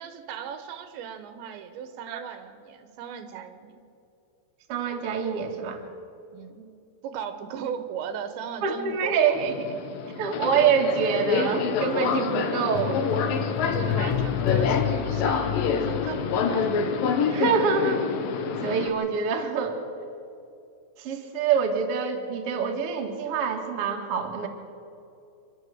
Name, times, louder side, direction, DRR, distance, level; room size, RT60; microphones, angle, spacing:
voice 1, 0.0-3.8 6.3-6.6 7.0-9.5 13.7-16.7, right 7 dB, 75° right, 9 dB, 3.3 m, -37 dB
voice 2, 4.7-5.8 8.6-9.7 10.2-13.0 17.3-18.0 18.6-19.8 21.0-24.5, right 6 dB, 45° right, 2 dB, 2.0 m, -25 dB
Subway metro underground, 9.3-18.9, left 5 dB, 65° left, 2.4 m, -27 dB
sound 1, 12.8-17.2 17.5-17.6, left 12 dB, 85° left, 3.3 m, -30 dB
27.5 x 12.5 x 7.9 m, 2.6 s
omnidirectional pair, 5.3 m